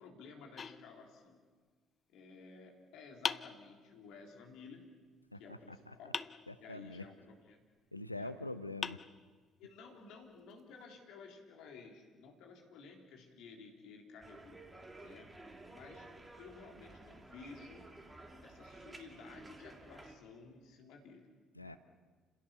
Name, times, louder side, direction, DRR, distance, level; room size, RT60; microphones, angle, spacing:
voice 1, 0.0-1.4 2.1-4.9 5.4-6.2 6.6-7.6 8.1-8.3 9.6-14.6 15.0-15.4 15.7-17.9 18.4-21.3 21.6-21.8, left 4 dB, 60° left, 1 dB, 3.6 m, -54 dB
sound 1, 0.6-1.6 3.2-4.2 6.1-7.1 8.2-8.3 8.8-9.8, left 6 dB, 35° left, 0.6 m, -42 dB
voice 2, 5.3-5.9 6.5-7.1 7.9-9.0 21.6-21.8, left 2 dB, 90° left, 13 dB, 0.6 m, -44 dB
sound 2, 14.2-20.2, right 2 dB, 15° right, 2.8 m, -54 dB
30.0 x 16.5 x 7.0 m, 1.5 s
figure-of-eight pair, 50°, 0 cm